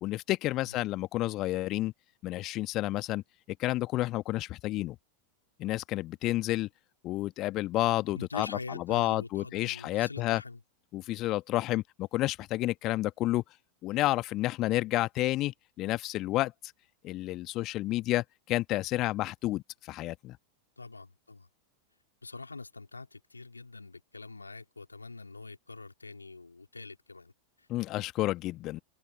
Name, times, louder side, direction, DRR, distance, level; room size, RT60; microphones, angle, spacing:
voice 1, 0.0-1.9 2.2-3.2 3.6-5.0 5.6-6.7 7.0-10.4 10.9-13.4 13.8-16.5 17.0-20.4 27.7-28.8, left 17 dB, 35° left, 1.6 m, -30 dB
voice 2, 8.1-10.6 20.8-21.5 22.2-27.3 27.6-27.7, left 3 dB, 80° left, 3.7 m, -44 dB
figure-of-eight pair, 90°, 0 cm